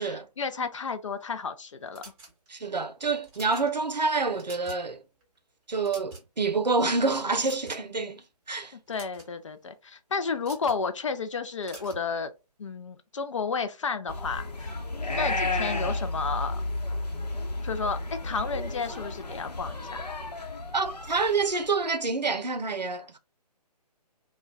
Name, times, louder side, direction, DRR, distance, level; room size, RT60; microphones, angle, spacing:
voice 1, 0.0-2.0 8.9-12.3 12.6-16.6 17.6-20.1, left 5 dB, 50° left, 0.5 m, -32 dB
sound 1, 1.9-2.6 3.2-3.7 4.2-4.9 5.2-5.4 5.7-6.5 7.4-8.0 8.7-9.3 10.4-10.8 11.6-12.1, right 3 dB, 15° right, 0.8 m, -47 dB
voice 2, 2.5-5.0 5.7-8.2 8.5-8.7 20.7-23.2, right 4 dB, 85° right, 0.6 m, -27 dB
sound 2, 14.1-21.7, left 2 dB, 75° left, 0.8 m, -32 dB
2.2 x 2.2 x 3.6 m
figure-of-eight pair, 140°, 21 cm